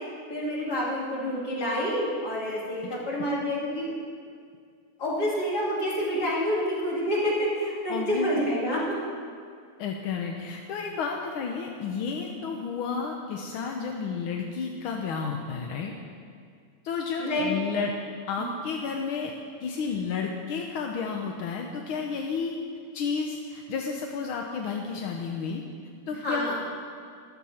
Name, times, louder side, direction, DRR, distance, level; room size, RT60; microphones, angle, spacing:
voice 1, 0.0-3.9 5.0-9.0 17.2-17.5 26.2-26.6, equal, 50° left, -6 dB, 3.5 m, -28 dB
voice 2, 7.9-8.3 9.8-16.0 16.9-17.9 18.3-19.3 19.6-22.6 22.9-25.6 26.1-26.5, left 5 dB, 85° left, 2 dB, 1.6 m, -31 dB
14.0 x 12.0 x 4.3 m, 2.2 s
omnidirectional pair, 2.2 m